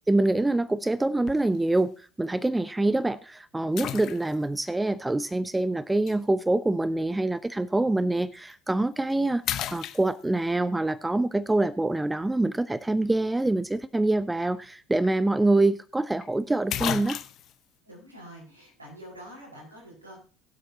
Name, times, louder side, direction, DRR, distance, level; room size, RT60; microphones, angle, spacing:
voice 1, 0.1-9.4 9.7-17.2, right 2 dB, 10° right, 18 dB, 0.5 m, -25 dB
sound 1, 1.3-1.6 2.2-2.3 3.8-4.6 6.1-6.2 8.3-8.5 9.0-9.1 9.4-10.5 14.6-14.7 15.0-15.1 16.2-16.3 16.7-17.6, left 11 dB, 50° left, 0.8 m, -33 dB
voice 2, 17.8-20.2, equal, 85° right, -2 dB, 4.9 m, -46 dB
21.5 x 7.7 x 2.8 m, 0.37 s
figure-of-eight pair, 65°, 0 cm